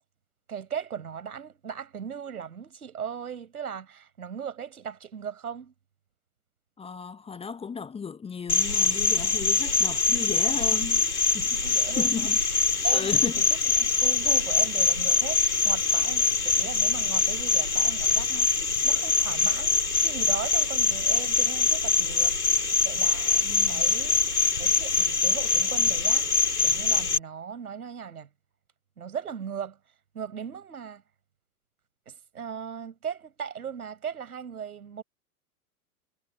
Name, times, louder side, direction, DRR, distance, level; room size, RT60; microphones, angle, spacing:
voice 1, 0.5-5.7 11.6-12.3 12.8-13.1 13.4-24.2 24.6-28.3 29.0-29.8 30.1-31.0 32.1-35.0, right 7 dB, 75° right, 5.7 m, -38 dB
voice 2, 6.8-11.1 11.3-12.4 12.9-13.6 23.4-23.8, left 6 dB, 15° left, 1.3 m, -35 dB
Cricket, 8.5-27.2, left 5 dB, 90° left, 2.2 m, -24 dB
figure-of-eight pair, 100°, 45 cm